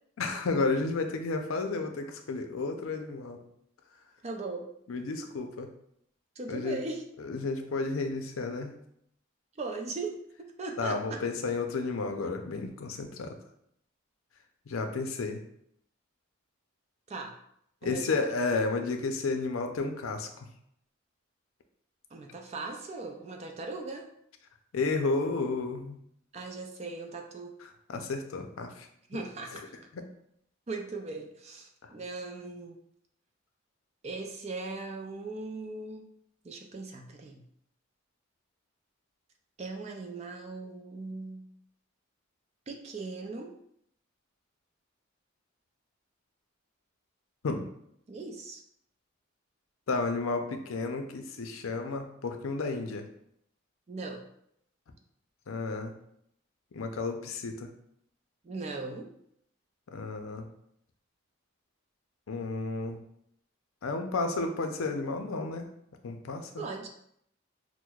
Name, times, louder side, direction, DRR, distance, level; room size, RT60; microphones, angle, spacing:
voice 1, 0.2-3.4 4.9-5.7 6.5-6.8 7.2-8.7 10.8-13.4 14.7-15.4 17.8-20.3 24.7-26.0 27.9-28.9 29.5-29.6 29.9-30.0 31.8-31.9 47.4-47.6 49.9-53.0 55.5-55.9 56.7-57.7 59.9-60.5 62.3-63.0 63.8-65.7 66.0-66.6, left 3 dB, 85° left, 5 dB, 0.5 m, -32 dB
voice 2, 4.2-4.7 6.4-7.0 9.6-10.2 10.6-11.2 17.1-17.4 17.8-18.1 22.1-24.1 26.3-27.5 29.1-29.8 30.7-32.8 34.0-36.0 36.4-37.4 39.6-41.5 42.7-43.5 48.1-48.6 53.9-54.3 58.4-59.1 66.6-66.9, right 3 dB, 30° right, 2 dB, 0.4 m, -39 dB
6.1 x 2.1 x 2.3 m, 0.72 s
head